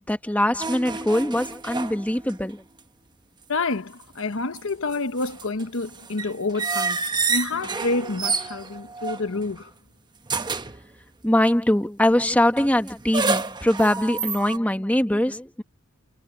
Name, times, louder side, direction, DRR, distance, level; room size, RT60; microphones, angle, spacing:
voice 1, 0.0-2.6 11.2-15.6, left 1 dB, 5° left, 1.4 m, -22 dB
sound 1, 0.6-2.5 2.8-2.9 4.3-9.7 10.3-10.8 12.6-14.6, right 4 dB, 20° right, 1.0 m, -29 dB
voice 2, 3.5-9.7, left 3 dB, 70° left, 1.1 m, -28 dB
head